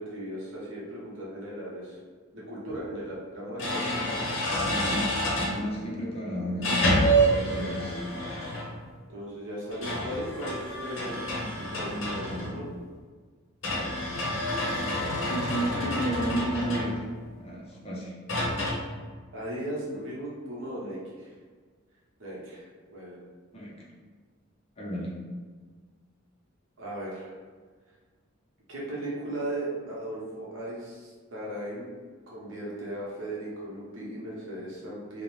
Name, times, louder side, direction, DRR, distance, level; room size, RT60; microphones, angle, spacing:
voice 1, 0.0-2.0 2.3-4.2 6.9-7.6 9.1-12.6 19.3-21.3 22.2-23.2 26.8-27.3 28.7-31.9 32.3-35.2, right 1 dB, 65° right, -6 dB, 0.8 m, -37 dB
sound 1, 2.7-2.8 3.6-5.6 6.6-8.8 9.7-12.7 13.6-17.2 18.3-18.7, right 1 dB, 65° left, 0.7 m, -28 dB
voice 2, 3.6-4.1 4.7-7.0 7.3-8.0 11.8-12.5 15.2-17.0 17.4-18.1 23.5-23.7 24.8-25.1, right 1 dB, 30° left, -4 dB, 0.5 m, -33 dB
2.6 x 2.0 x 3.0 m, 1.5 s
head